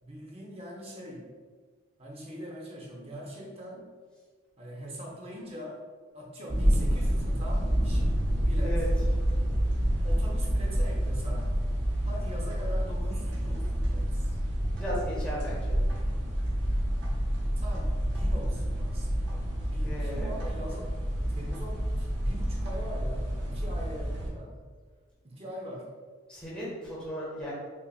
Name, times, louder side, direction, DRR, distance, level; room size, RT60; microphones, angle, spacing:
voice 1, 0.0-1.3 2.0-3.9 4.6-5.8 6.1-8.8 10.0-11.5 12.0-14.4 17.6-20.9 21.3-24.6 25.2-25.9, equal, 30° right, -1 dB, 0.7 m, -42 dB
sound 1, 6.5-24.3, equal, 60° right, 0.9 m, -28 dB
voice 2, 14.7-15.8 19.8-20.3 26.3-27.5, equal, 5° left, -7 dB, 1.0 m, -36 dB
5.5 x 2.4 x 2.3 m, 1.5 s
head